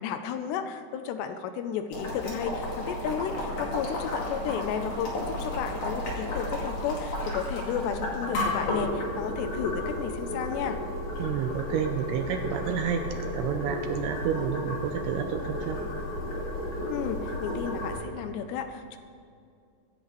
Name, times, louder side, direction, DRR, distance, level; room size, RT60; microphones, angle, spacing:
voice 1, 0.0-10.8 16.9-19.0, left 7 dB, 85° left, 8 dB, 2.8 m, -33 dB
Boiling, 1.9-18.0, left 1 dB, 40° left, 3.0 m, -33 dB
voice 2, 11.2-13.0 13.3-15.8, right 8 dB, 85° right, 6 dB, 2.4 m, -30 dB
24.5 x 10.5 x 3.2 m, 2.4 s
omnidirectional pair, 5.1 m